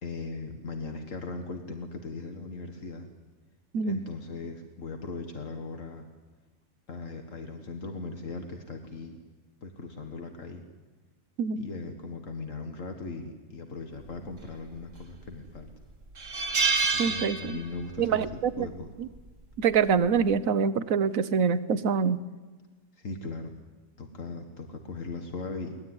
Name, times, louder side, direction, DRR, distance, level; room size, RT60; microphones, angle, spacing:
voice 1, 0.0-3.1 3.8-6.1 6.9-9.2 9.6-10.6 11.6-15.7 16.9-18.3 18.6-18.9 23.0-23.6 24.0-25.8, left 3 dB, 75° left, 5 dB, 2.1 m, -38 dB
sound 1, 14.7-15.3 15.7-15.8 16.2-18.0 18.2-18.5 19.7-20.0, right 4 dB, 70° right, 2.5 m, -28 dB
voice 2, 17.0-17.6 18.0-18.7 19.0-19.1 19.6-22.2, right 6 dB, 85° right, 14 dB, 1.4 m, -25 dB
23.0 x 19.5 x 9.8 m, 1.3 s
omnidirectional pair, 1.4 m